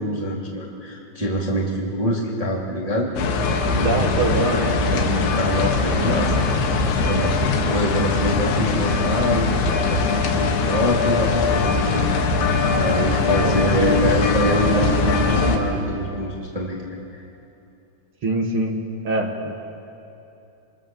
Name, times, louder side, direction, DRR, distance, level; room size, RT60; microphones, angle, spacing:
voice 1, 0.0-3.1 3.7-4.2 4.4-4.6 4.9-9.5 9.9-12.1 12.7-17.2, equal, 10° right, -3 dB, 1.8 m, -25 dB
sound 1, 3.2-15.6, left 3 dB, 90° left, 4.1 m, -21 dB
voice 2, 3.8-4.6 13.4-14.0 18.2-19.6, right 2 dB, 50° right, 2 dB, 1.6 m, -24 dB
26.5 x 25.0 x 7.2 m, 2.8 s
omnidirectional pair, 5.0 m